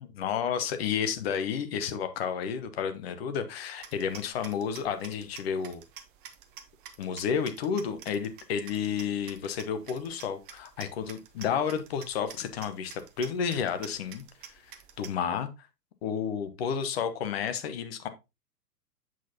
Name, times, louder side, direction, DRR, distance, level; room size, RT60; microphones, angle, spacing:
voice 1, 0.0-5.8 7.0-14.2 14.5-14.7 15.0-15.5 16.0-18.1, left 7 dB, 40° left, 1.0 m, -31 dB
sound 1, 3.8-15.1, right 8 dB, 30° right, 0.9 m, -49 dB
7.5 x 6.1 x 2.8 m
figure-of-eight pair, 110°, 49 cm